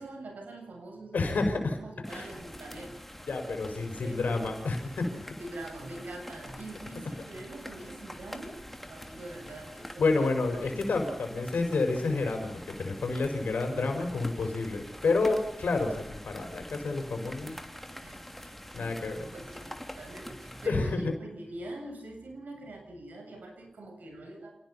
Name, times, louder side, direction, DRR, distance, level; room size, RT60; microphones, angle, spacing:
voice 1, 0.0-1.5 1.8-3.0 3.8-4.6 5.4-10.3 10.6-10.9 18.0-18.2 18.8-24.5, right 2 dB, 85° right, 3 dB, 7.7 m, -44 dB
voice 2, 1.1-1.8 2.1-2.3 3.3-5.3 10.0-17.5 18.4-19.3 20.6-21.1, left 3 dB, 90° left, 4 dB, 5.2 m, -29 dB
sound 1, 2.0-20.7, equal, 5° left, 3.0 m, -45 dB
27.5 x 19.5 x 5.7 m, 0.77 s
wide cardioid pair, 65°, 3 cm